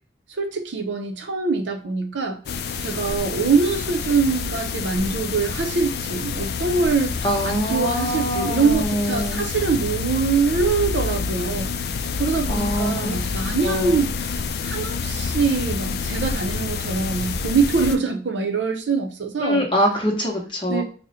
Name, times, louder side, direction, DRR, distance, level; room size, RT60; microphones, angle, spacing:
voice 1, 0.4-2.4 2.8-7.2 7.4-11.7 12.2-19.6 20.7-20.8, right 4 dB, 80° right, 0.6 m, -23 dB
sound 1, 2.5-18.0, left 5 dB, 55° left, 0.3 m, -28 dB
voice 2, 7.2-9.4 12.5-13.2 13.6-14.0 19.4-20.8, equal, 25° left, 0.8 m, -24 dB
3.7 x 2.1 x 4.1 m
head